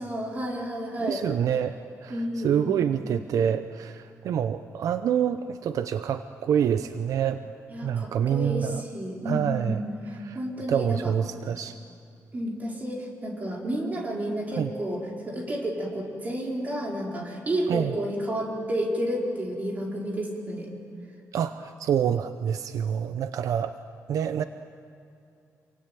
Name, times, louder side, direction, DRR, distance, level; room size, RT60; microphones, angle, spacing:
voice 1, 0.0-1.2 2.1-2.8 7.7-9.8 10.3-11.1 12.3-15.0 15.2-20.7, equal, 25° right, -1 dB, 4.5 m, -31 dB
voice 2, 1.0-7.5 7.8-8.8 9.2-9.8 10.1-10.4 10.7-11.8 14.5-14.7 17.7-17.9 21.3-23.8 24.1-24.4, right 8 dB, 75° right, 10 dB, 0.8 m, -27 dB
27.5 x 23.5 x 9.2 m, 2.6 s
wide cardioid pair, 160°, 6 cm